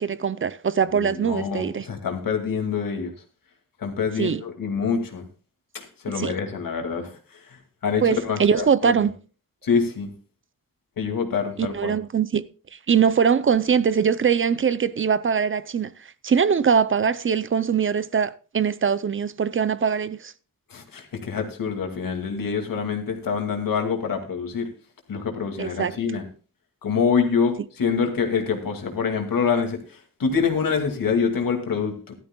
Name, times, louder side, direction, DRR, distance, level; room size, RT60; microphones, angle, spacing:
voice 1, 0.0-1.9 4.2-4.4 6.2-6.3 8.0-9.1 11.6-12.4 12.7-20.3 25.6-26.0, right 7 dB, 40° right, 0.4 m, -22 dB
voice 2, 0.9-3.1 3.8-5.3 5.7-8.9 9.6-10.1 11.0-11.9 20.7-24.7 25.1-26.2 26.8-32.1, left 6 dB, 90° left, 2.2 m, -26 dB
15.5 x 12.5 x 2.3 m
wide cardioid pair, 150°, 33 cm